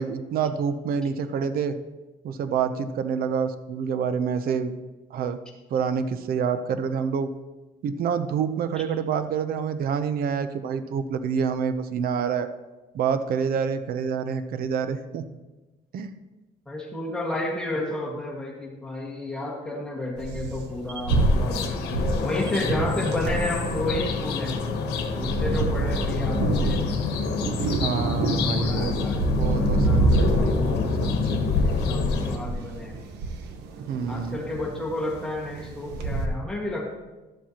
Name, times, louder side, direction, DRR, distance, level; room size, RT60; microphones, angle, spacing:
voice 1, 0.0-1.8 2.2-4.7 5.1-5.4 5.7-7.3 7.8-12.5 12.9-15.2 15.9-16.1 25.5-25.6 27.8-29.1 29.4-31.5 33.8-34.4, right 6 dB, 60° right, 11 dB, 0.7 m, -27 dB
voice 2, 16.7-21.6 22.2-24.6 25.1-26.8 28.0-30.6 31.0-31.2 31.6-33.0 34.1-36.9, left 1 dB, 5° left, -3 dB, 1.8 m, -32 dB
sound 1, 20.2-36.3, right 3 dB, 80° right, 1.0 m, -28 dB
sound 2, 21.1-32.4, left 4 dB, 80° left, 1.1 m, -27 dB
12.0 x 7.3 x 3.0 m, 1.1 s
cardioid pair, 110°, 17 cm